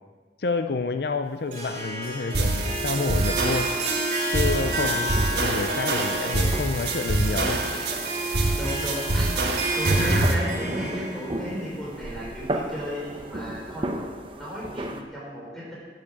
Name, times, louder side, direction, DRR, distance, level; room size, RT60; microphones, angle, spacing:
voice 1, 0.4-3.8 4.3-7.6, left 4 dB, 60° left, 9 dB, 0.5 m, -29 dB
Harp, 1.5-12.7, right 1 dB, 45° right, 3.4 m, -31 dB
sound 1, 2.3-10.3, right 2 dB, 65° right, 1.6 m, -26 dB
voice 2, 4.4-4.7 8.6-13.9 14.4-15.7, equal, ahead, -7 dB, 5.3 m, -34 dB
sound 2, 4.6-15.0, right 1 dB, 30° right, 1.0 m, -36 dB
11.5 x 9.4 x 7.4 m, 1.5 s
head